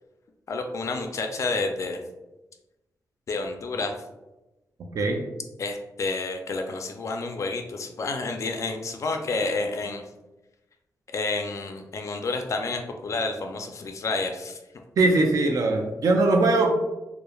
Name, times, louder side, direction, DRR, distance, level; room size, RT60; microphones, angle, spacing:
voice 1, 0.5-2.0 3.3-4.0 5.6-10.0 11.1-14.6, left 3 dB, 55° left, 4 dB, 0.3 m, -29 dB
voice 2, 4.9-5.2 15.0-16.7, right 2 dB, 65° right, 3 dB, 0.3 m, -21 dB
3.0 x 2.0 x 2.2 m, 1.0 s
wide cardioid pair, 120°, 6 cm